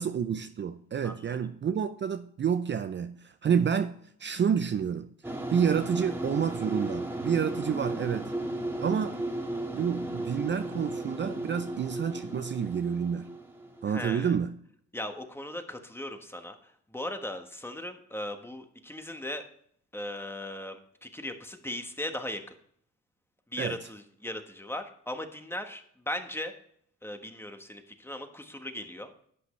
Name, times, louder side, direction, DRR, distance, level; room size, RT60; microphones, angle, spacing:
voice 1, 0.0-3.9 4.2-8.3 8.8-9.2 9.7-13.3 13.8-14.5 23.6-23.8, right 7 dB, 40° right, 9 dB, 0.6 m, -29 dB
voice 2, 1.0-1.4 13.9-14.4 14.9-19.4 19.9-22.5 23.5-26.5 27.0-29.1, left 1 dB, 10° left, 6 dB, 1.3 m, -38 dB
sound 1, 5.2-13.9, right 1 dB, 10° right, 1.8 m, -35 dB
11.5 x 7.9 x 3.2 m, 0.65 s
cardioid pair, 90°, 30 cm